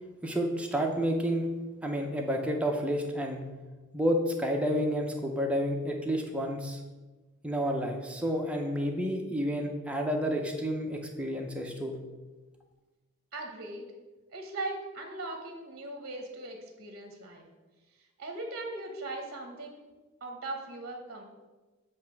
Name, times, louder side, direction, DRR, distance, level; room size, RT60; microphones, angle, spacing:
voice 1, 0.2-1.5 1.8-3.4 3.9-6.8 7.4-12.0, equal, 5° right, 1 dB, 0.7 m, -30 dB
voice 2, 13.3-13.9 14.3-17.5 18.2-19.8 20.2-21.2, right 2 dB, 45° right, 3 dB, 0.9 m, -39 dB
8.1 x 3.2 x 5.9 m, 1.2 s
head